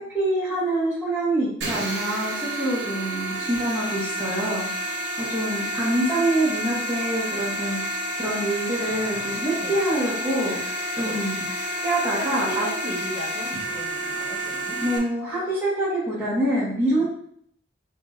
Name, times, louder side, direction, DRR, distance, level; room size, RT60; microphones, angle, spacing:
voice 1, 0.1-11.4 11.8-12.7 14.8-17.0, right 1 dB, 10° right, -10 dB, 1.5 m, -26 dB
sound 1, 1.6-15.0, equal, 75° right, 1.2 m, -30 dB
voice 2, 12.1-14.8 17.0-17.1, right 1 dB, 30° right, -8 dB, 1.6 m, -36 dB
4.9 x 3.0 x 2.6 m, 0.63 s
head